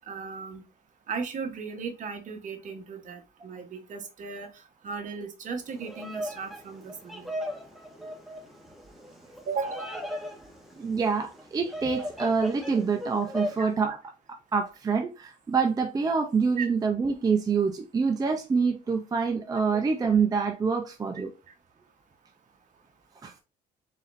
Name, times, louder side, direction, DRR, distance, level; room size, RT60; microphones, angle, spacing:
voice 1, 0.1-0.6 1.1-7.3 9.5-9.9 13.6-13.7 16.6-16.7 21.1-21.3, right 5 dB, 50° right, 1.2 m, -36 dB
Bird vocalization bird call bird song, 5.7-13.7, equal, ahead, 1.3 m, -38 dB
voice 2, 10.8-14.0 14.3-21.3 23.2-23.4, right 5 dB, 20° right, 0.5 m, -26 dB
4.2 x 4.1 x 2.6 m
cardioid pair, 110°, 17 cm